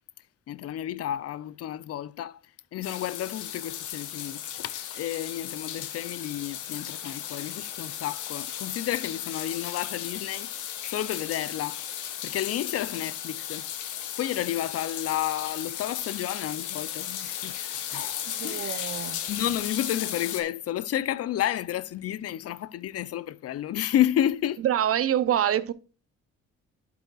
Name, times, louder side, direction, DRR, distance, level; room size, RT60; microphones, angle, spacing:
voice 1, 0.5-2.4 2.7-10.5 10.9-11.8 12.2-13.7 14.2-24.6, left 12 dB, 55° left, 0.5 m, -31 dB
sound 1, 2.8-20.4, left 10 dB, 85° left, 0.9 m, -35 dB
voice 2, 18.3-19.2 24.6-25.7, right 10 dB, 50° right, 0.6 m, -26 dB
11.5 x 5.6 x 2.3 m
cardioid pair, 90°, 30 cm